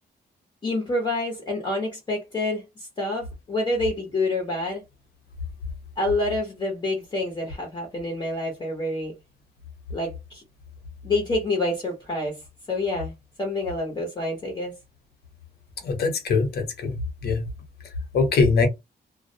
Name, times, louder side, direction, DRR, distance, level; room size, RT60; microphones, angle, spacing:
voice 1, 0.6-4.8 6.0-9.1 9.9-10.4 11.0-12.4 12.7-13.1 13.4-14.7, left 2 dB, 25° left, 0.7 m, -27 dB
voice 2, 15.8-17.0 17.2-17.4 18.1-18.7, left 4 dB, 70° left, 0.9 m, -22 dB
2.3 x 2.1 x 2.6 m
wide cardioid pair, 165°, 17 cm